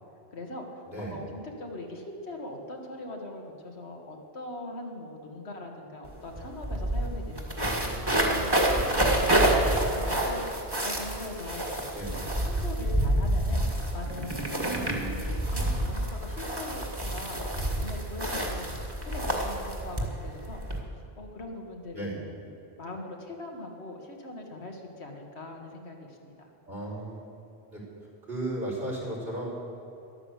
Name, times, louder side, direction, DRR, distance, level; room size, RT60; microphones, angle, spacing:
voice 1, 0.3-7.7 8.0-10.4 10.8-13.6 13.9-18.7 19.0-20.6 21.2-22.5 22.8-26.5, left 2 dB, 85° left, 2 dB, 2.1 m, -41 dB
voice 2, 0.9-1.2 7.6-8.3 11.9-12.2 14.6-15.2 21.9-22.2 26.7-27.2 27.7-27.8 28.3-29.5, right 1 dB, 70° right, -2 dB, 4.7 m, -36 dB
sound 1, 6.0-6.1 6.4-20.8, right 1 dB, 20° right, 1.9 m, -28 dB
13.0 x 11.5 x 8.2 m, 2.8 s
omnidirectional pair, 1.1 m